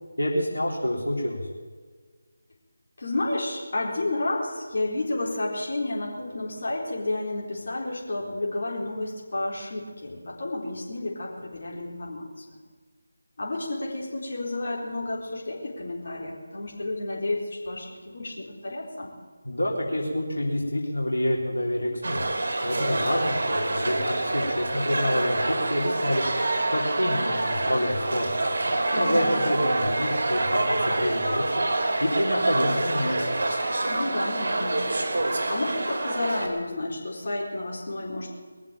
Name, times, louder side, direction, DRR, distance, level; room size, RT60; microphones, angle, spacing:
voice 1, 0.2-1.4 19.4-22.2 22.6-26.2 26.7-31.6 32.0-33.3, left 1 dB, 85° left, -2 dB, 3.5 m, -27 dB
voice 2, 3.0-12.4 13.4-19.1 28.9-29.4 33.8-38.4, left 2 dB, 50° left, -3 dB, 4.1 m, -31 dB
sound 1, 22.0-36.5, right 2 dB, 45° right, 3.3 m, -26 dB
21.5 x 7.4 x 9.0 m, 1.5 s
figure-of-eight pair, 160°, 0 cm